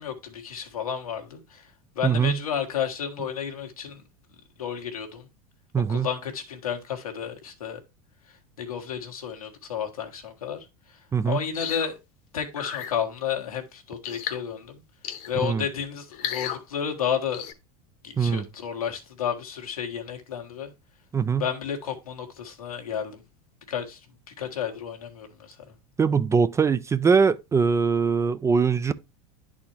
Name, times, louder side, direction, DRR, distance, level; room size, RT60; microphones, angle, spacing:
voice 1, 0.0-4.0 4.6-5.3 5.9-7.8 8.3-11.9 12.3-14.8 15.3-17.5 18.0-20.7 21.4-23.2 23.7-24.0 24.4-25.6, left 8 dB, 90° left, 1.3 m, -32 dB
voice 2, 2.0-2.4 5.7-6.1 11.1-11.4 15.4-15.6 18.2-18.4 21.1-21.4 26.0-28.9, right 5 dB, 15° right, 0.3 m, -22 dB
sound 1, 11.5-11.9 12.5-12.9 14.0-14.4 15.0-15.4 16.1-16.6 17.3-17.5, left 10 dB, 50° left, 1.0 m, -33 dB
10.5 x 4.2 x 2.8 m
hypercardioid pair, 90°, 18 cm